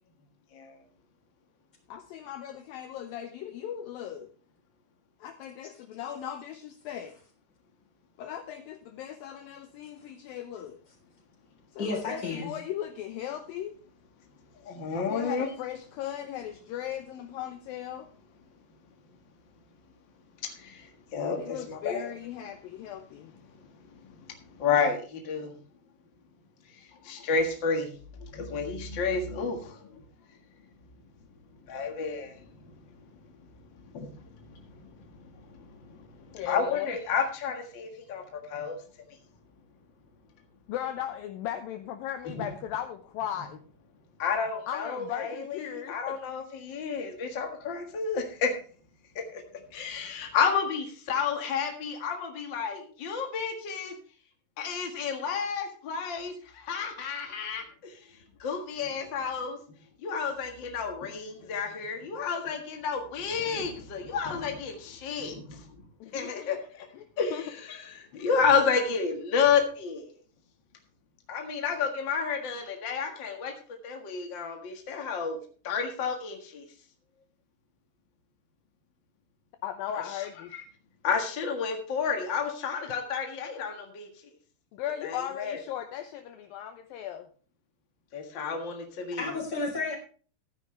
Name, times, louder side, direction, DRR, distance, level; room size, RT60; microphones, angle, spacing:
voice 1, 1.9-4.3 5.2-7.1 8.2-10.8 11.7-13.7 14.9-18.1 21.4-23.3 36.3-36.9 40.7-43.6 44.7-46.2 66.0-66.6 66.9-67.4 79.6-80.5 84.7-87.3, left 10 dB, 75° left, 7 dB, 2.2 m, -37 dB
voice 2, 11.8-12.5 89.2-90.0, left 3 dB, 25° left, 1 dB, 3.8 m, -31 dB
voice 3, 14.6-15.5 20.6-20.8 21.1-22.1 24.6-25.5 27.0-27.9 28.3-29.7 31.7-32.4 33.9-34.1 36.5-38.2 38.5-38.8 42.4-42.5 44.2-48.5 49.3-49.4 49.7-53.9 54.6-57.9 58.4-59.6 60.0-65.6 66.1-66.8 67.2-70.1 71.3-73.5 73.8-75.4 75.6-76.6 80.5-80.6 81.0-84.1 85.0-85.6 88.1-89.3, left 6 dB, 55° left, 3 dB, 1.2 m, -30 dB
15.0 x 10.0 x 3.3 m, 0.40 s
omnidirectional pair, 4.8 m